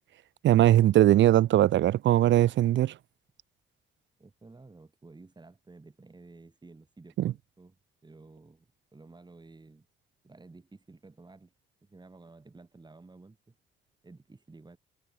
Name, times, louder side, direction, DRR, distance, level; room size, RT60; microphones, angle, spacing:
voice 1, 0.4-2.9 7.2-7.3, right 13 dB, 70° right, 0.8 m, -20 dB
voice 2, 4.2-7.8 8.0-9.9 10.2-11.5 11.8-13.5 14.0-14.8, right 3 dB, 20° right, 5.8 m, -53 dB
cardioid pair, 90°, 20 cm